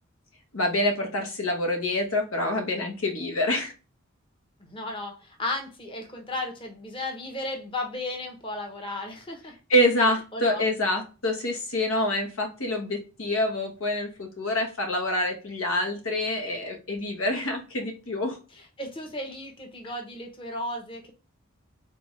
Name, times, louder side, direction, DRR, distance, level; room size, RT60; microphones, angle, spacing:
voice 1, 0.5-3.7 9.7-18.4, left 1 dB, 85° left, 3 dB, 1.2 m, -26 dB
voice 2, 4.6-9.5 10.0-10.6 18.5-21.1, left 2 dB, 25° left, 2 dB, 0.9 m, -35 dB
3.9 x 3.4 x 3.2 m, 0.32 s
head